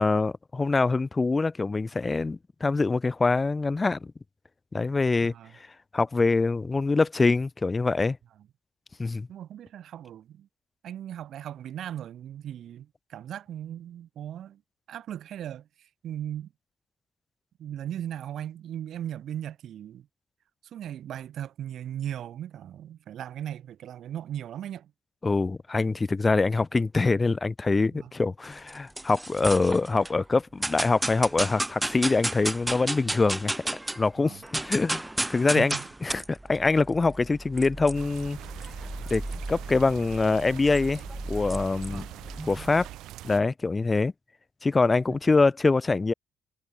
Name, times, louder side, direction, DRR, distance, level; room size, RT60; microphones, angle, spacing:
voice 1, 0.0-4.1 4.7-5.3 5.9-8.2 9.0-9.3 25.2-33.5 34.0-35.0 35.3-35.7 36.0-38.4 39.1-39.2 39.5-41.0 41.3-42.0 42.5-42.9 43.2-44.1 44.6-46.1, left 3 dB, 25° left, 0.6 m, -24 dB
voice 2, 5.2-5.5 9.3-10.5 10.8-14.6 14.9-16.5 17.6-20.1 20.7-24.9 27.9-28.1 34.2-34.4 35.5-35.9 41.9-42.1, right 10 dB, 70° right, 2.0 m, -37 dB
sound 1, 28.4-30.1 30.6-34.1 34.4-42.9, right 1 dB, 10° right, 3.7 m, -34 dB
sound 2, 37.9-43.4, right 15 dB, 90° right, 7.5 m, -43 dB
cardioid pair, 90°, 0 cm